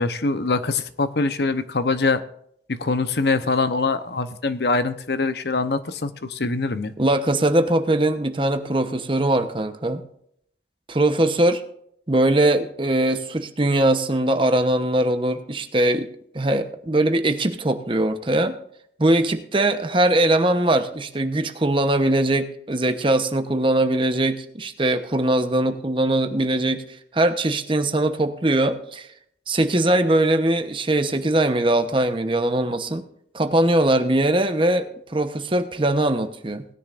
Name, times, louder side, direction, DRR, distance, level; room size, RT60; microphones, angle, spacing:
voice 1, 0.0-2.2 2.7-6.9, left 3 dB, 70° left, 11 dB, 0.8 m, -23 dB
voice 2, 7.0-10.0 10.9-11.6 12.1-16.1 16.3-18.6 19.0-26.8 27.1-29.1 29.5-33.0 33.3-36.6, right 1 dB, 30° right, 8 dB, 0.9 m, -21 dB
19.5 x 10.0 x 2.5 m, 0.69 s
head